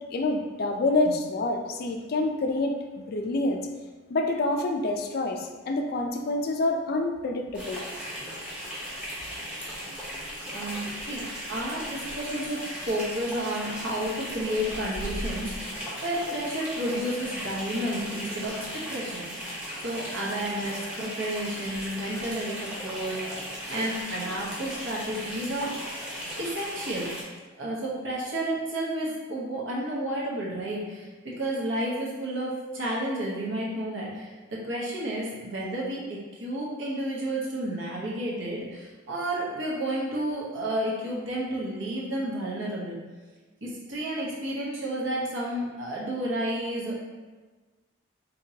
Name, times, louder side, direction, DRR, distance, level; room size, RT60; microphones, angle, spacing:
voice 1, 0.1-3.6 4.1-7.8, left 2 dB, 50° left, 4 dB, 0.4 m, -27 dB
sound 1, 7.5-27.2, equal, 5° right, 0.9 m, -37 dB
voice 2, 10.5-19.2 19.8-25.9 26.4-27.1 27.6-43.0 43.6-47.0, right 1 dB, 65° right, -5 dB, 1.0 m, -31 dB
4.4 x 2.8 x 2.8 m, 1.3 s
head